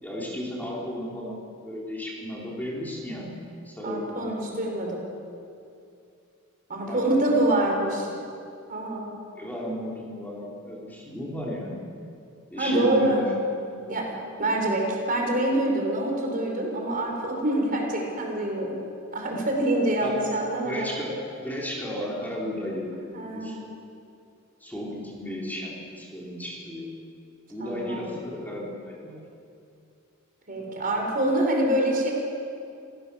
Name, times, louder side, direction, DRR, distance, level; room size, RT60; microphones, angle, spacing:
voice 1, 0.0-3.4 3.6-4.5 6.9-8.1 9.3-11.8 12.5-13.3 13.6-14.0 20.0-20.2 20.6-23.6 24.6-26.9 27.5-29.2 30.5-30.8, equal, 10° left, -4 dB, 4.0 m, -34 dB
voice 2, 3.8-5.0 6.7-8.1 8.7-9.1 12.6-13.2 13.9-18.8 19.1-20.9 23.1-23.6 27.6-28.0 30.5-32.1, right 1 dB, 40° right, 0 dB, 4.6 m, -26 dB
28.0 x 17.0 x 7.1 m, 2.5 s
head